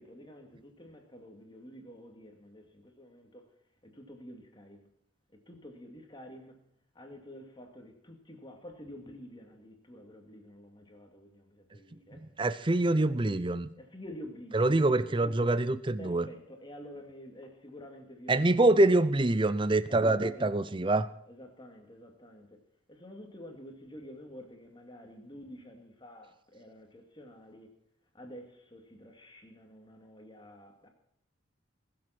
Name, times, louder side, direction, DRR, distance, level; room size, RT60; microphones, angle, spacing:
voice 1, 0.0-3.4 3.8-4.9 5.5-6.6 6.9-12.3 12.8-13.2 13.8-15.6 16.0-18.8 19.9-20.7 21.3-22.5 22.9-27.7 28.1-30.9, equal, 25° left, 2.3 m, -49 dB
voice 2, 12.4-13.7 14.5-16.3 18.3-21.1, right 2 dB, 25° right, 0.5 m, -25 dB
21.0 x 7.8 x 5.9 m
head